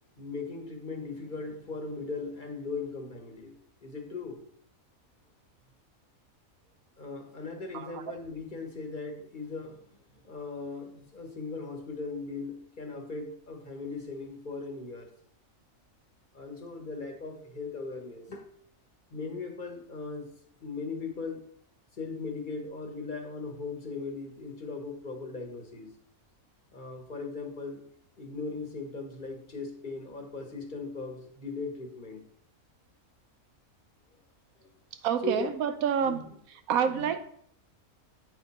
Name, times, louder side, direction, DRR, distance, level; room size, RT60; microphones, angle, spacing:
voice 1, 0.2-3.5 3.8-4.4 7.0-9.8 10.1-15.1 16.3-18.5 19.1-20.3 20.6-21.4 21.9-25.9 26.7-27.8 28.2-32.2 34.6-34.7 35.2-35.5 36.0-36.3 36.9-37.2, left 4 dB, 35° left, 3 dB, 1.2 m, -38 dB
voice 2, 35.0-36.2 36.7-37.2, right 8 dB, 90° right, 9 dB, 1.1 m, -27 dB
8.7 x 4.3 x 4.2 m, 0.65 s
omnidirectional pair, 1.5 m